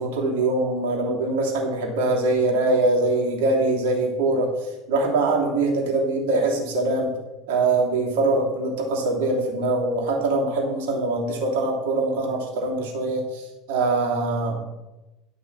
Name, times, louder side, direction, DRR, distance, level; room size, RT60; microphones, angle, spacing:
voice 1, 0.0-7.1 7.5-14.6, right 2 dB, 60° right, -1 dB, 3.0 m, -23 dB
11.0 x 6.0 x 6.3 m, 1.0 s
figure-of-eight pair, 70°, 0 cm